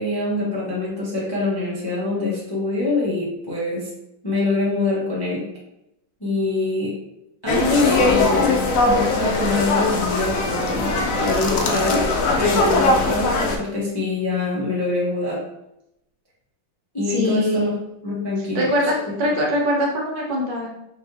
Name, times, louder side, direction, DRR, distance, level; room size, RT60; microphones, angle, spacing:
voice 1, 0.0-3.9 4.2-5.5 6.2-7.0 7.4-15.4 16.9-17.7 18.0-18.7, left 2 dB, 20° left, -6 dB, 0.6 m, -24 dB
fair stalls city holiday wine walk market mall Poland, 7.5-13.6, left 3 dB, 70° left, 0.8 m, -20 dB
voice 2, 7.8-8.5 17.1-17.7 18.5-20.7, equal, 65° right, -2 dB, 1.6 m, -23 dB
4.5 x 3.0 x 3.4 m, 0.85 s
omnidirectional pair, 2.1 m